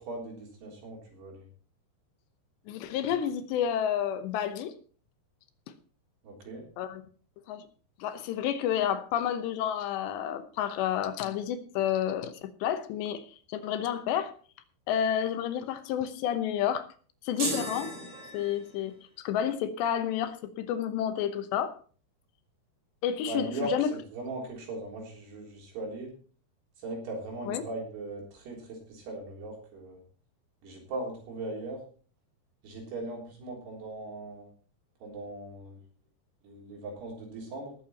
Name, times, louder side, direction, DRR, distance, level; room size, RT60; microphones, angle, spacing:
voice 1, 0.0-1.5 6.2-6.6 23.3-26.1 26.8-30.0 30.6-31.8 32.6-34.5 35.0-35.8 36.4-37.8, right 2 dB, 70° right, -1 dB, 5.7 m, -39 dB
voice 2, 2.7-4.7 6.8-7.0 7.5-7.6 8.0-13.2 13.5-14.3 14.9-16.9 17.2-17.9 18.3-21.8 23.0-23.9 27.5-27.6, left 9 dB, 80° left, 10 dB, 3.2 m, -30 dB
sound 1, 17.4-18.9, right 2 dB, 35° right, 3.5 m, -36 dB
18.5 x 7.6 x 4.2 m, 0.41 s
omnidirectional pair, 5.0 m